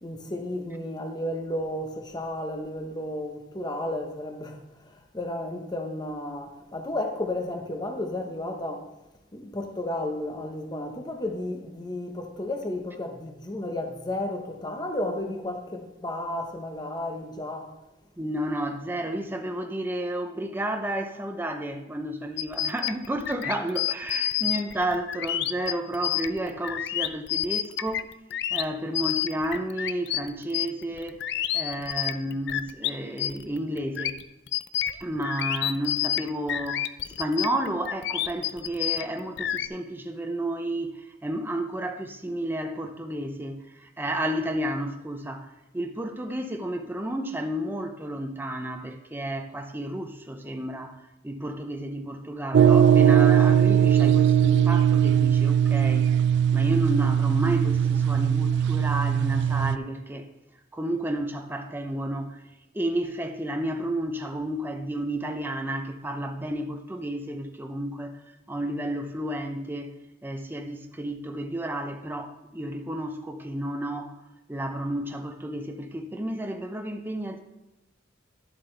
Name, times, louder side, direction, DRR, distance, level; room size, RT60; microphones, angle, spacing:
voice 1, 0.0-8.9 9.3-17.7, left 1 dB, 20° left, 1.0 m, -33 dB
voice 2, 18.2-28.1 28.5-31.2 31.5-34.2 35.0-56.1 56.5-60.3 60.7-62.4 62.7-68.2 68.5-74.2 74.5-77.4, right 1 dB, 10° right, 0.6 m, -31 dB
sound 1, 22.4-32.9 33.2-39.7, left 11 dB, 60° left, 0.4 m, -29 dB
sound 2, 52.5-59.8, right 9 dB, 60° right, 0.3 m, -20 dB
11.5 x 7.6 x 3.3 m
head